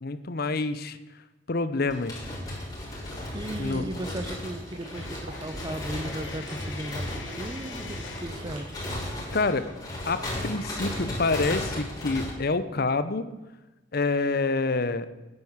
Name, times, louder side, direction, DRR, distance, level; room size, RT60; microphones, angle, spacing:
voice 1, 0.0-1.0 1.5-2.3 3.6-3.9 9.3-9.7 10.1-13.3 13.9-15.1, left 3 dB, 55° left, 13 dB, 0.8 m, -27 dB
sound 1, 1.9-12.3, left 1 dB, 20° left, 4.5 m, -35 dB
Water / Liquid, 3.1-8.6, right 1 dB, 90° right, 4.5 m, -45 dB
voice 2, 3.3-8.8, right 1 dB, 25° right, 12 dB, 0.6 m, -36 dB
Coin (dropping), 4.9-8.4, left 6 dB, 75° left, 1.5 m, -45 dB
10.5 x 9.7 x 7.3 m, 1.1 s
head